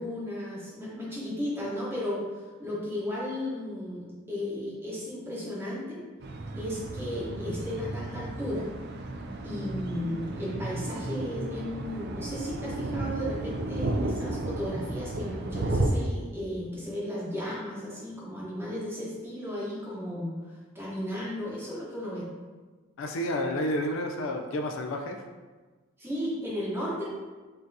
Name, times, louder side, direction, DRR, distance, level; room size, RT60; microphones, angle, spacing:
voice 1, 0.0-6.0 6.6-8.7 9.4-22.3 26.0-27.1, left 1 dB, 10° right, -6 dB, 0.9 m, -35 dB
sound 1, 6.2-15.9, right 2 dB, 50° right, 0.4 m, -33 dB
voice 2, 23.0-25.2, left 1 dB, 65° left, 3 dB, 0.4 m, -30 dB
5.4 x 2.7 x 2.6 m, 1.3 s
head